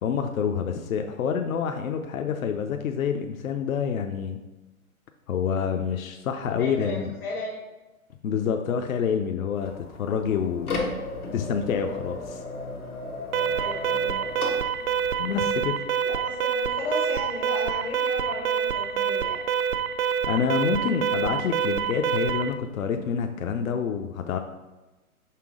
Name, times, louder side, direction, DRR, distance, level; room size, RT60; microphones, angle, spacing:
voice 1, 0.0-4.4 5.3-7.1 8.2-10.8 11.3-12.4 15.2-15.7 20.3-24.4, left 7 dB, 70° left, 5 dB, 0.7 m, -27 dB
voice 2, 6.6-7.5 13.5-14.4 16.1-19.4, left 2 dB, 15° left, -2 dB, 0.5 m, -35 dB
sound 1, 9.6-15.6, left 2 dB, 90° left, 1.7 m, -35 dB
Alarm, 13.3-22.5, right 8 dB, 75° right, 0.7 m, -26 dB
5.9 x 3.5 x 4.8 m, 1.1 s
hypercardioid pair, 130°, 43 cm